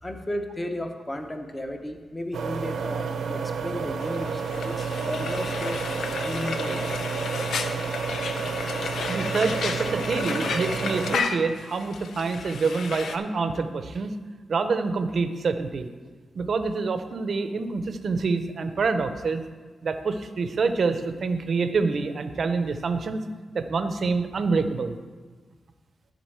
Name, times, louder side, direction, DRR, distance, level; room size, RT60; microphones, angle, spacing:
voice 1, 0.0-5.8 6.2-6.9, left 1 dB, 15° left, 5 dB, 0.7 m, -34 dB
sound 1, 2.3-11.2, right 6 dB, 80° right, 0.7 m, -30 dB
Frying (food), 4.0-13.2, left 5 dB, 70° left, 0.6 m, -32 dB
voice 2, 9.1-14.1 14.5-15.9 16.3-19.4 19.8-23.2 23.5-25.0, right 4 dB, 45° right, 9 dB, 0.6 m, -26 dB
11.0 x 3.9 x 7.7 m, 1.4 s
wide cardioid pair, 170°, 0 cm